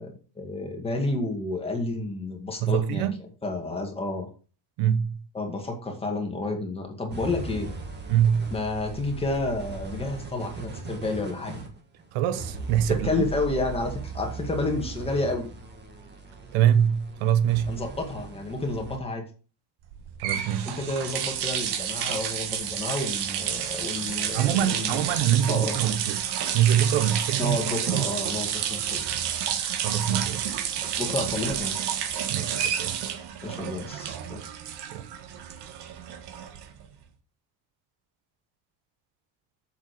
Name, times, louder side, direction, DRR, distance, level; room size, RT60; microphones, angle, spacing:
voice 1, 0.0-3.1 3.4-4.3 5.3-7.7 8.5-11.6 12.9-15.5 17.7-19.2 20.7-25.0 25.5-25.8 27.4-29.0 30.8-31.8 33.4-34.4, left 2 dB, 10° left, 2.0 m, -30 dB
voice 2, 2.6-3.2 4.8-5.2 8.1-8.5 12.1-13.2 16.5-17.8 20.2-20.7 24.3-26.3 26.5-27.6 27.9-28.1 29.8-30.5 32.3-33.0 34.9-35.1, right 10 dB, 85° right, 1.1 m, -24 dB
sound 1, 7.1-19.0, right 5 dB, 20° right, 1.6 m, -38 dB
sound 2, 19.9-36.9, right 9 dB, 60° right, 1.4 m, -30 dB
7.4 x 7.4 x 5.1 m
cardioid pair, 175°, 46 cm